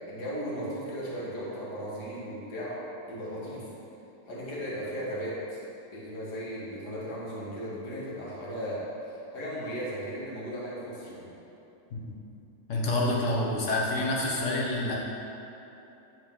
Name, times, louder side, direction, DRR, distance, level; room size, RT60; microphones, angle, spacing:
voice 1, 0.0-2.8 3.1-3.7 4.3-5.6 5.9-8.8 9.1-11.3, equal, 85° left, -7 dB, 2.0 m, -36 dB
voice 2, 12.7-15.0, left 2 dB, 55° left, -3 dB, 1.1 m, -28 dB
9.9 x 3.5 x 3.7 m, 2.9 s
omnidirectional pair, 1.7 m